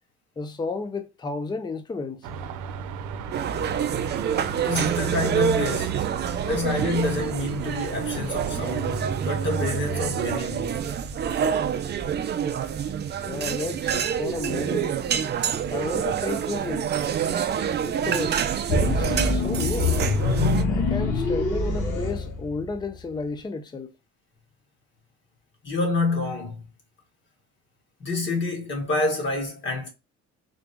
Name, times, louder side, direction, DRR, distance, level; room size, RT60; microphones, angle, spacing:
voice 1, 0.4-2.3 13.2-15.0 15.7-16.9 17.8-20.0 20.6-23.9, left 3 dB, 15° left, 0.5 m, -32 dB
Car passing by / Traffic noise roadway noise / Engine, 2.2-10.4, right 6 dB, 75° right, 0.7 m, -33 dB
sound 1, 3.3-20.6, right 8 dB, 35° right, 0.5 m, -27 dB
voice 2, 4.6-6.0 6.5-10.8 25.6-26.6 28.0-29.9, left 2 dB, 40° left, 1.8 m, -28 dB
sound 2, 18.7-23.0, left 4 dB, 85° left, 1.5 m, -25 dB
3.9 x 2.3 x 3.5 m
cardioid pair, 115°, 30 cm